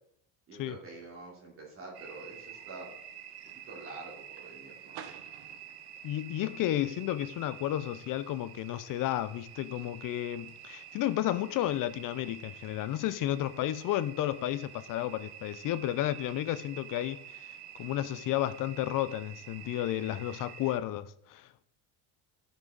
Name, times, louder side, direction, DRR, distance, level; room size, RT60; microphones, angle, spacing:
voice 1, 0.5-2.9 3.4-5.0, right 3 dB, 25° right, 3.3 m, -47 dB
sound 1, 1.9-20.8, right 9 dB, 50° right, 0.9 m, -48 dB
voice 2, 6.0-17.2 17.8-21.6, left 13 dB, 45° left, 0.5 m, -32 dB
14.0 x 6.2 x 3.9 m
cardioid pair, 180°, 49 cm